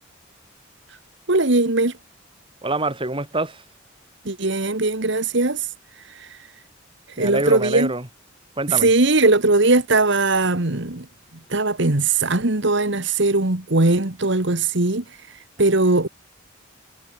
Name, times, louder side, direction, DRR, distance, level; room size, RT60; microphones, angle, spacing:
voice 1, 1.3-1.9 4.3-5.7 6.1-6.4 7.2-7.9 8.7-11.0 11.5-15.0 15.6-16.1, right 2 dB, 65° right, 2.1 m, -19 dB
voice 2, 2.6-3.6 7.2-8.1 8.6-8.9, right 2 dB, 25° right, 7.9 m, -25 dB
head